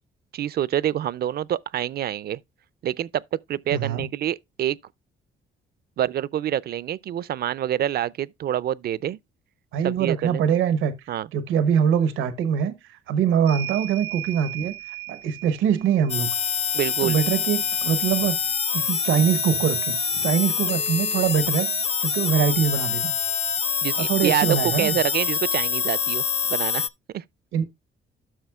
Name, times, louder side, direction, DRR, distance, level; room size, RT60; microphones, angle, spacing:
voice 1, 0.3-2.4 2.8-3.2 3.5-4.8 6.0-9.2 9.8-10.4 11.1-11.3 16.7-17.2 23.8-26.2 26.5-26.9 27.1-27.2, right 11 dB, 50° right, 0.4 m, -26 dB
voice 2, 3.7-4.1 9.7-10.9 11.3-12.7 13.1-14.7 15.1-16.3 17.0-18.3 18.7-21.7 22.0-23.1 23.9-25.0 27.5-27.6, right 8 dB, 90° right, 0.9 m, -23 dB
sound 1, 13.5-21.6 22.8-22.9 23.2-24.3, right 14 dB, 70° left, 2.4 m, -40 dB
sound 2, 16.1-26.9, left 7 dB, 30° left, 0.5 m, -25 dB
12.5 x 6.0 x 2.3 m
cardioid pair, 90°, 20 cm